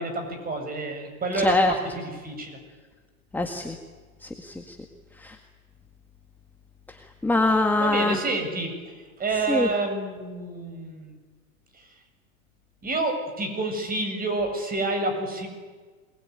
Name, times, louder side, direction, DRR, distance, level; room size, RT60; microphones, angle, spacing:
voice 1, 0.0-2.6 7.8-8.9 9.2-11.1 12.8-15.5, right 2 dB, 20° right, 6 dB, 7.7 m, -28 dB
voice 2, 1.4-1.7 3.3-3.8 4.2-4.8 5.2-5.4 7.2-8.2 9.5-9.7, left 2 dB, 5° left, 4 dB, 1.9 m, -23 dB
28.0 x 21.5 x 9.7 m, 1.4 s
hypercardioid pair, 115°, 43 cm